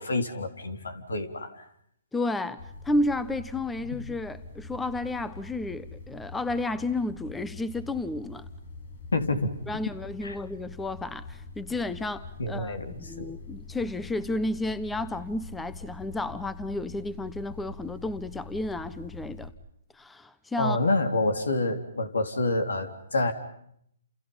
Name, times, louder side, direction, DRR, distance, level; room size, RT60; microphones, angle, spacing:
voice 1, 0.0-1.6 3.9-4.0 9.1-9.5 10.2-10.3 12.4-13.3 20.6-23.3, left 2 dB, 85° left, 3.7 m, -28 dB
voice 2, 2.1-8.5 9.7-19.5 19.9-20.8, left 2 dB, 5° left, 1.0 m, -32 dB
sound 1, 2.6-19.5, left 3 dB, 65° left, 6.3 m, -44 dB
29.5 x 28.5 x 5.6 m
hypercardioid pair, 145°, 0 cm